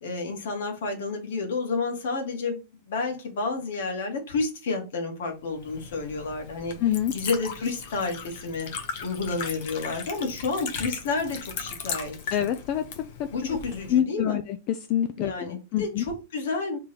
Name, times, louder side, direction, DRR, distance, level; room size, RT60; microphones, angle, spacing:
voice 1, 0.0-8.7 9.0-12.1 13.3-14.4 15.2-16.8, left 3 dB, 65° left, 3 dB, 1.8 m, -30 dB
Liquid, 5.5-14.0, left 6 dB, 45° left, 0.8 m, -38 dB
voice 2, 6.8-7.1 12.3-13.1 13.5-13.6 13.9-14.4 14.7-16.0, left 11 dB, 30° left, 9 dB, 0.3 m, -26 dB
3.7 x 3.2 x 4.2 m, 0.28 s
supercardioid pair, 175°, 0 cm